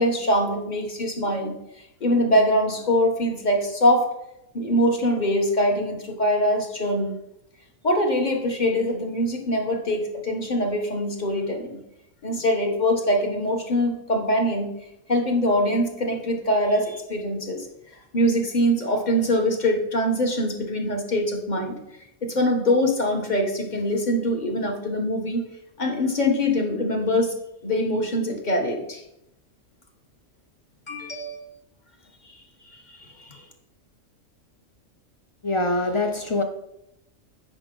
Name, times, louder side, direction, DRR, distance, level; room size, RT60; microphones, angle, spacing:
voice 1, 0.0-1.6 2.0-4.1 4.5-7.1 7.8-11.8 12.2-14.7 15.1-17.7 18.1-21.8 22.2-25.4 25.8-27.3 27.6-29.0 30.9-31.4 32.9-33.4, equal, 35° left, 2 dB, 1.2 m, -23 dB
voice 2, 35.4-36.4, left 2 dB, 55° left, 6 dB, 0.3 m, -24 dB
9.7 x 4.9 x 3.8 m, 0.83 s
omnidirectional pair, 1.3 m